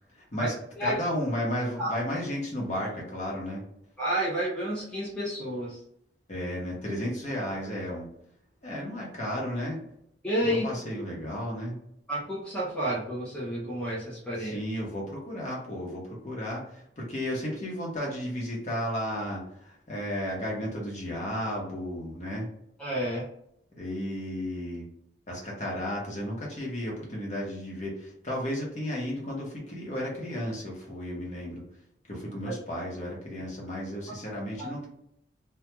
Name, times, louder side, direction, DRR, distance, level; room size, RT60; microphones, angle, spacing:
voice 1, 0.1-3.6 6.3-8.1 8.6-9.8 10.4-11.8 14.4-22.5 23.7-24.9 25.3-31.6 32.1-34.9, equal, 40° left, -3 dB, 0.9 m, -33 dB
voice 2, 4.0-5.8 10.2-10.6 12.1-14.6 22.8-23.3 34.6-34.7, right 1 dB, 5° left, -7 dB, 0.5 m, -30 dB
2.3 x 2.2 x 2.9 m, 0.73 s
head